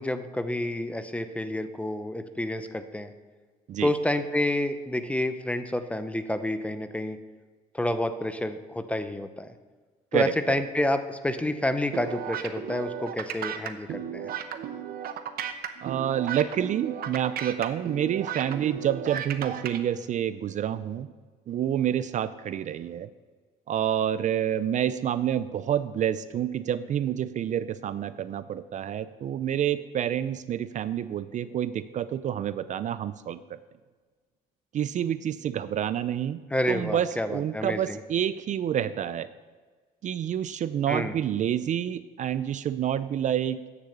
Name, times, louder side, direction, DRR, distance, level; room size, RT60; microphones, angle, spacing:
voice 1, 0.0-3.1 3.8-7.2 7.7-9.5 10.1-14.3 36.5-38.0 40.9-41.1, left 1 dB, 5° left, 10 dB, 0.7 m, -29 dB
sound 1, 11.9-19.8, right 9 dB, 60° right, 0.9 m, -35 dB
voice 2, 15.8-21.1 21.5-23.1 23.7-33.6 34.7-36.4 36.7-39.3 40.0-43.7, right 10 dB, 45° right, 14 dB, 0.4 m, -28 dB
9.8 x 6.8 x 7.9 m, 1.4 s
cardioid pair, 110°, 17 cm